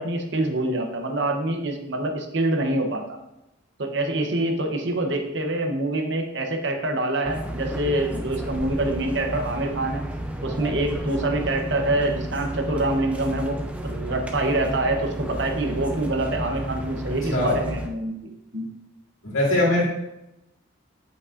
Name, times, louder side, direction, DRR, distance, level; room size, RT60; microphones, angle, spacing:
voice 1, 0.0-3.2 3.8-10.0 10.4-13.6 13.8-18.7, right 2 dB, 55° right, 3 dB, 0.8 m, -26 dB
sound 1, 7.2-17.9, right 1 dB, 5° right, 0.4 m, -32 dB
voice 2, 19.2-19.9, left 1 dB, 75° left, -5 dB, 2.2 m, -21 dB
8.2 x 5.3 x 2.5 m, 0.91 s
head